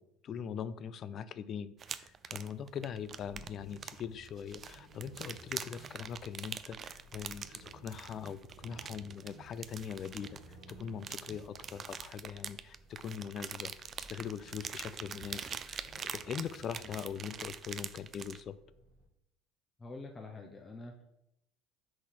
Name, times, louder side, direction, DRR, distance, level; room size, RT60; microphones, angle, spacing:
voice 1, 0.0-18.6, left 8 dB, 45° left, 16 dB, 0.4 m, -42 dB
sound 1, 1.8-18.4, right 7 dB, 40° right, 0.4 m, -44 dB
sound 2, 3.1-19.0, right 1 dB, 85° right, 1.7 m, -57 dB
voice 2, 19.8-21.0, left 2 dB, 20° left, 1 dB, 0.8 m, -46 dB
6.1 x 4.1 x 4.7 m, 0.81 s
hypercardioid pair, 65°, 0 cm